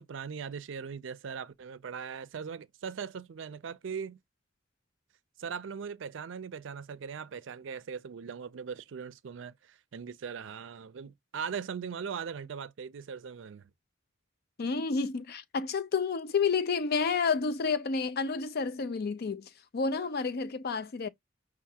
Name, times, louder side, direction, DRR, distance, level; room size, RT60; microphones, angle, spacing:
voice 1, 0.0-4.2 5.4-13.7, right 6 dB, 70° right, 0.4 m, -40 dB
voice 2, 14.6-21.1, left 5 dB, 55° left, 0.5 m, -30 dB
5.8 x 2.5 x 2.7 m
head